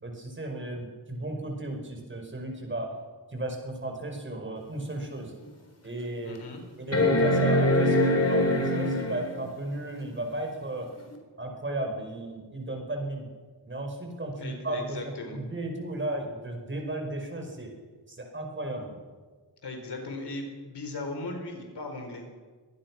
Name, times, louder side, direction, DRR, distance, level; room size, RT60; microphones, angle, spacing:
voice 1, 0.0-2.9 3.3-5.3 5.8-6.4 6.8-10.9 11.4-13.3 13.7-17.7 18.1-19.0, right 1 dB, 30° right, 3 dB, 5.0 m, -34 dB
sound 1, 4.8-4.9 5.4-5.5 6.9-9.4 11.1-11.2, left 1 dB, 35° left, 3.8 m, -23 dB
voice 2, 6.2-6.6 14.4-15.4 19.6-22.2, left 2 dB, 70° left, 4 dB, 4.9 m, -37 dB
23.5 x 19.0 x 6.1 m, 1.4 s
wide cardioid pair, 135°, 42 cm